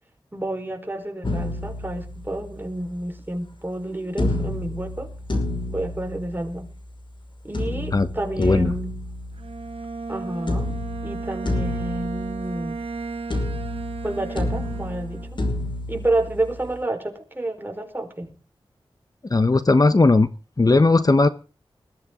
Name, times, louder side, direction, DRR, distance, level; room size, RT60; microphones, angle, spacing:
voice 1, 0.3-5.1 5.7-6.7 7.4-8.9 10.1-10.8 11.0-12.8 14.0-15.4 15.9-18.3, right 1 dB, 20° right, 4 dB, 4.6 m, -29 dB
sound 1, 1.2-2.8 4.2-6.8 7.5-10.1 10.5-13.0 13.3-16.8, left 1 dB, 55° left, 5.6 m, -29 dB
voice 2, 8.4-8.7 19.3-20.3 20.6-21.3, left 3 dB, 40° left, 12 dB, 1.1 m, -17 dB
Bowed string instrument, 9.3-15.4, right 4 dB, 80° right, 1.9 m, -34 dB
20.5 x 14.0 x 3.8 m, 0.36 s
wide cardioid pair, 65°, 10 cm